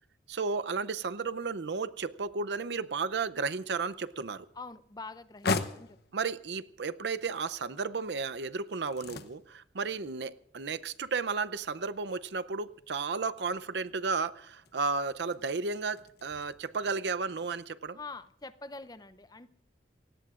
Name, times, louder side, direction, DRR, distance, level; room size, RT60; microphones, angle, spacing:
voice 1, 0.3-4.5 6.1-18.0, right 4 dB, 70° right, 13 dB, 0.6 m, -33 dB
sound 1, 3.7-16.9, left 3 dB, 60° left, 0.8 m, -42 dB
voice 2, 4.6-6.0 18.0-19.5, left 3 dB, 20° left, 13 dB, 0.6 m, -45 dB
28.5 x 17.0 x 2.5 m, 0.71 s
head